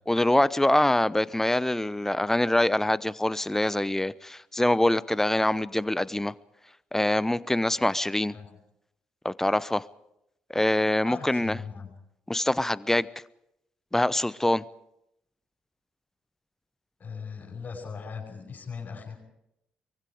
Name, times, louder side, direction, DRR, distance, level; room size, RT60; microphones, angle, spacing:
voice 1, 0.1-6.3 6.9-8.4 9.2-9.8 10.5-11.6 12.3-13.1 13.9-14.6, left 1 dB, 10° left, 0.8 m, -24 dB
voice 2, 11.0-11.9 17.0-19.2, left 5 dB, 45° left, 7.0 m, -39 dB
24.0 x 22.5 x 5.0 m
hypercardioid pair, 45°, 4 cm